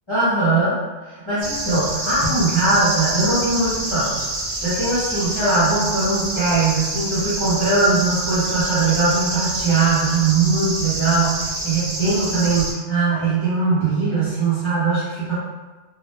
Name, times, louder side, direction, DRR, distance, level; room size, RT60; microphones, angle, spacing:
voice 1, 0.1-0.8 1.1-4.2 4.6-15.3, right 3 dB, 35° left, -12 dB, 0.6 m, -20 dB
sound 1, 1.4-12.7, right 2 dB, 55° right, 0.4 m, -27 dB
2.2 x 2.0 x 2.8 m, 1.3 s
omnidirectional pair, 1.2 m